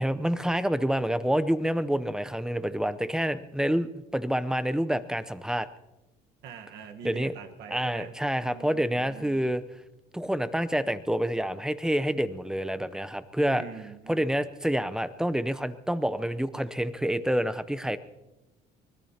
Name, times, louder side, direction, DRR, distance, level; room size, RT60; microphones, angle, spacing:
voice 1, 0.0-5.7 7.0-7.3 7.7-9.6 10.1-13.6 14.1-18.0, equal, 5° right, 12 dB, 0.7 m, -28 dB
voice 2, 6.4-8.1 8.4-9.5 13.5-14.4, right 7 dB, 80° right, 5 dB, 1.4 m, -44 dB
24.5 x 19.5 x 2.9 m, 1.0 s
cardioid pair, 110°, 17 cm